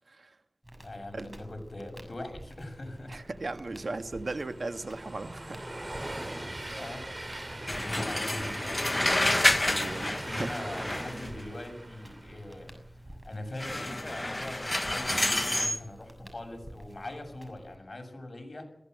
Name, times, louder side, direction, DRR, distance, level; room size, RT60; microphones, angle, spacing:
Crackle, 0.6-17.8, right 1 dB, 20° right, 6.6 m, -50 dB
voice 1, 0.8-3.2 6.2-6.5 6.7-7.1 7.5-8.8 9.8-18.6, left 1 dB, 50° left, 7.1 m, -42 dB
voice 2, 3.1-5.7 9.7-10.6, right 3 dB, 75° right, 1.6 m, -37 dB
Train, 3.3-12.7, right 1 dB, 40° right, 3.0 m, -41 dB
sound 1, 7.7-11.4 13.6-15.8, left 1 dB, 30° left, 0.8 m, -29 dB
21.5 x 16.5 x 8.1 m
wide cardioid pair, 50°, 0 cm